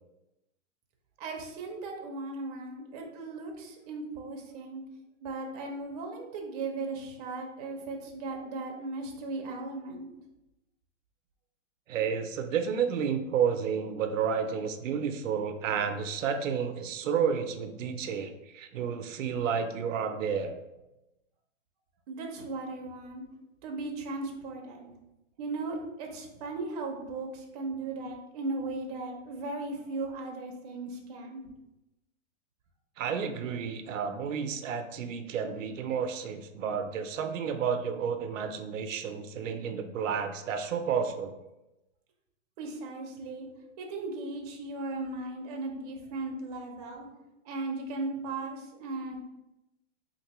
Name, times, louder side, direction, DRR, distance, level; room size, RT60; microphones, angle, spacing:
voice 1, 1.2-4.8 5.2-10.1 22.1-23.2 23.6-24.9 25.4-31.5 42.6-43.5 43.8-47.1 47.5-49.2, right 3 dB, 35° right, 1 dB, 0.5 m, -37 dB
voice 2, 11.9-20.5 33.0-41.3, right 7 dB, 85° right, 7 dB, 0.5 m, -31 dB
3.6 x 2.6 x 2.9 m, 0.95 s
hypercardioid pair, 155°, 38 cm